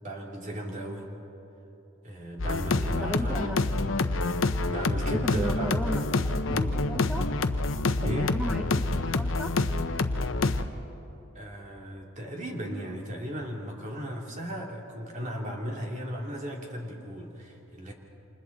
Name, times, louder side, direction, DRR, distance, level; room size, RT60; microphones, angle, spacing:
voice 1, 0.0-1.1 2.0-3.6 4.7-5.8 6.5-6.8 8.0-8.4 11.3-17.9, right 1 dB, 40° right, -1 dB, 3.0 m, -36 dB
sound 1, 2.4-10.6, left 2 dB, 75° left, 0.8 m, -27 dB
voice 2, 3.0-3.6 5.1-6.0 6.3-7.3 8.0-9.5, equal, 5° right, 4 dB, 0.6 m, -35 dB
28.5 x 27.0 x 4.1 m, 3.0 s
head